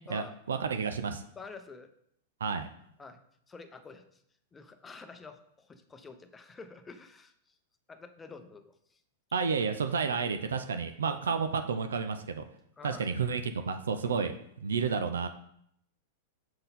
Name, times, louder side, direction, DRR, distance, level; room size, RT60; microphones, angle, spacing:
voice 1, 0.1-1.2 2.4-2.7 9.3-12.4 12.8-14.3 14.6-15.3, right 5 dB, 90° right, 8 dB, 0.4 m, -31 dB
voice 2, 1.4-1.9 3.0-3.2 3.5-4.2 4.5-7.5 7.9-9.0 11.2-11.4 12.8-13.1 14.0-14.3, left 4 dB, 15° left, 8 dB, 0.6 m, -49 dB
6.7 x 4.0 x 4.1 m, 0.72 s
hypercardioid pair, 125°, 0 cm